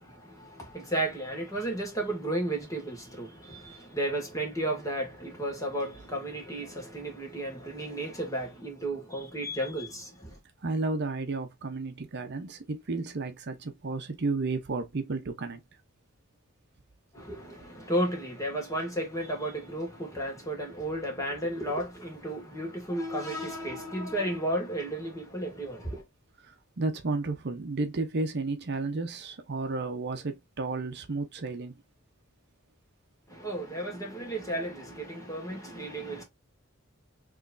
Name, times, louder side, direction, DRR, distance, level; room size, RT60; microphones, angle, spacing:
voice 1, 0.0-10.4 17.1-26.0 33.3-36.2, right 1 dB, 15° left, 1.7 m, -33 dB
voice 2, 10.6-15.6 26.5-31.7, right 3 dB, 55° right, 0.7 m, -32 dB
4.7 x 3.1 x 2.5 m
head